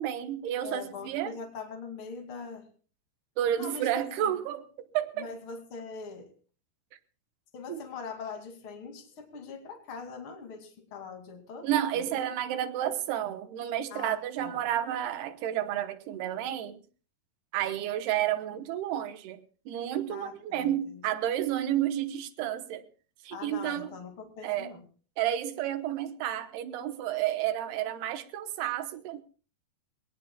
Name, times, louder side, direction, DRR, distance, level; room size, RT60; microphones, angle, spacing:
voice 1, 0.0-1.4 3.4-5.3 7.7-7.8 11.6-16.8 17.5-19.4 19.7-22.9 23.2-23.9 24.4-24.7 25.2-29.2, right 11 dB, 85° right, 10 dB, 3.1 m, -31 dB
voice 2, 0.6-2.7 3.6-3.9 4.2-4.4 5.2-6.3 7.5-11.7 11.9-12.2 13.9-14.6 20.1-21.0 23.3-24.8, left 5 dB, 35° left, 3 dB, 2.8 m, -42 dB
22.5 x 18.5 x 2.3 m, 0.39 s
omnidirectional pair, 4.5 m